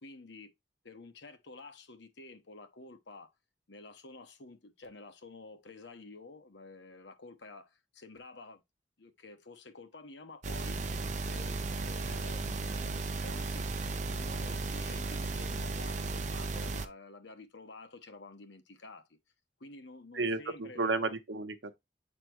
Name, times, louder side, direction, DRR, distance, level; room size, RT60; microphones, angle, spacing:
voice 1, 0.0-0.5 0.8-3.3 3.7-8.6 9.0-10.8 11.2-19.2 19.6-21.2, left 3 dB, 85° left, 1.1 m, -50 dB
sound 1, 10.4-16.9, right 3 dB, 40° right, 0.7 m, -35 dB
voice 2, 20.1-21.7, right 3 dB, 85° right, 1.0 m, -32 dB
8.1 x 4.2 x 3.0 m
head